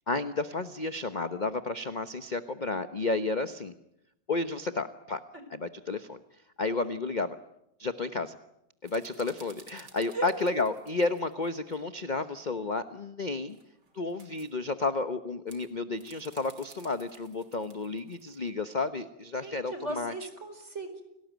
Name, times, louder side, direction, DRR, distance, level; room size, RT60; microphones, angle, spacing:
voice 1, 0.1-3.7 4.3-5.2 5.5-6.2 6.6-7.4 7.8-8.4 8.8-13.6 13.9-20.1, left 3 dB, 30° left, 10 dB, 0.9 m, -32 dB
sound 1, 8.8-11.8 13.4-14.5 15.5-18.5, right 3 dB, 65° right, 4.0 m, -56 dB
voice 2, 19.4-21.0, right 2 dB, 35° right, 8 dB, 4.9 m, -38 dB
29.5 x 19.0 x 9.3 m, 0.83 s
omnidirectional pair, 2.0 m